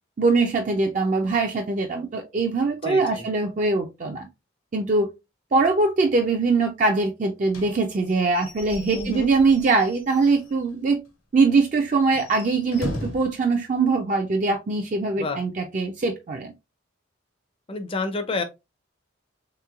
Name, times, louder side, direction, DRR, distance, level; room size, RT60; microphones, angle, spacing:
voice 1, 0.2-4.3 4.7-5.1 5.5-11.0 11.3-16.5, right 3 dB, 40° right, 0.3 m, -22 dB
voice 2, 2.8-3.3 8.9-9.3 15.2-15.4 17.7-18.4, left 3 dB, 25° left, 0.4 m, -29 dB
Slam / Squeak / Wood, 7.5-10.7 11.1-11.2 11.5-11.6 12.0-13.4, left 1 dB, 90° left, 1.1 m, -37 dB
3.2 x 3.0 x 2.3 m
head